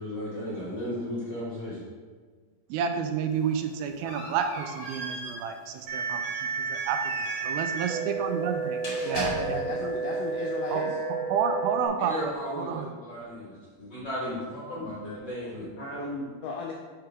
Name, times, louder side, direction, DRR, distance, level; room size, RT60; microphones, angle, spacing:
voice 1, 0.0-1.8 12.0-16.2, equal, 50° left, -9 dB, 1.3 m, -35 dB
voice 2, 2.7-7.1 7.4-9.6 10.7-10.8 11.3-12.9, right 7 dB, 80° right, 6 dB, 2.3 m, -30 dB
sound 1, 3.3-9.9, equal, 35° left, 1.6 m, -40 dB
sound 2, 5.9-11.9, right 5 dB, 65° right, 2.5 m, -31 dB
voice 3, 9.0-11.0 16.4-16.7, left 4 dB, 80° left, -1 dB, 1.9 m, -35 dB
6.0 x 5.0 x 4.5 m, 1.5 s
omnidirectional pair, 4.4 m